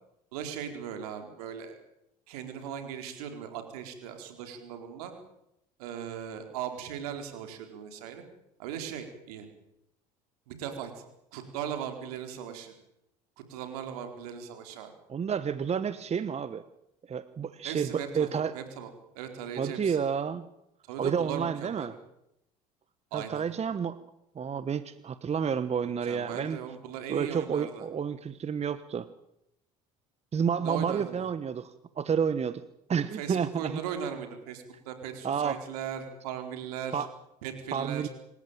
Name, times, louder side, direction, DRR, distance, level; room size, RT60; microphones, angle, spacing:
voice 1, 0.3-1.8 2.3-5.1 5.8-8.2 8.6-9.5 10.5-10.9 11.3-12.7 13.5-14.9 17.6-18.9 19.1-20.0 20.9-21.9 23.1-23.4 26.0-27.9 30.6-31.3 33.0-37.0 37.4-38.1, right 8 dB, 75° right, 6 dB, 4.3 m, -38 dB
voice 2, 15.1-16.6 17.1-18.5 19.6-20.4 21.0-21.9 23.1-24.0 24.3-26.6 27.1-29.1 30.3-32.6 32.9-33.8 35.2-35.6 36.9-37.1 37.7-38.1, right 7 dB, 35° right, 14 dB, 1.3 m, -30 dB
26.5 x 15.0 x 9.1 m, 0.82 s
hypercardioid pair, 65°, 19 cm